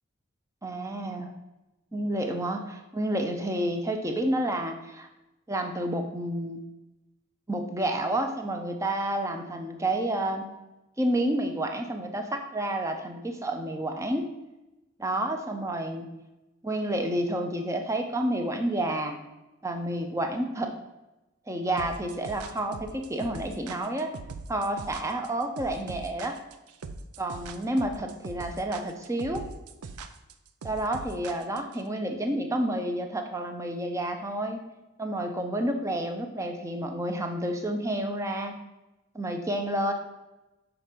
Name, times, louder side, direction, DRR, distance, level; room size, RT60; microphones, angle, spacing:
voice 1, 0.6-1.3 1.9-5.1 5.5-6.6 7.5-10.4 11.0-14.3 15.0-16.1 16.6-19.2 19.6-20.7 21.5-24.1 24.5-26.4 27.2-29.4 30.6-34.6 35.0-38.6 39.1-39.9, right 1 dB, 15° right, 4 dB, 0.6 m, -30 dB
sound 1, 21.8-31.8, right 4 dB, 85° right, 0.5 m, -41 dB
6.0 x 4.2 x 5.1 m, 1.0 s
head